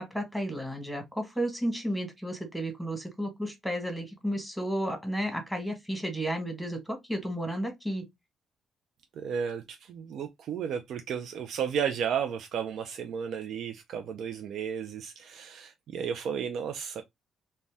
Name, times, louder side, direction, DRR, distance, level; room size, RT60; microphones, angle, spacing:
voice 1, 0.0-8.0, equal, ahead, 1.2 m, -32 dB
voice 2, 9.2-17.0, right 7 dB, 70° right, 0.4 m, -33 dB
2.6 x 2.1 x 3.3 m
cardioid pair, 90°, 0 cm